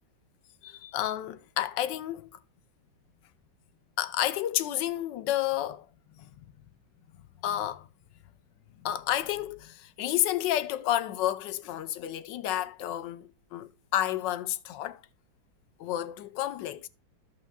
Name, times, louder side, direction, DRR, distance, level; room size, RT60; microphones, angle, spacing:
voice 1, 0.6-2.3 4.0-5.9 6.2-6.3 7.4-7.9 8.8-15.0 15.8-16.9, left 13 dB, 75° left, 1.2 m, -30 dB
14.0 x 5.7 x 2.2 m
omnidirectional pair, 2.0 m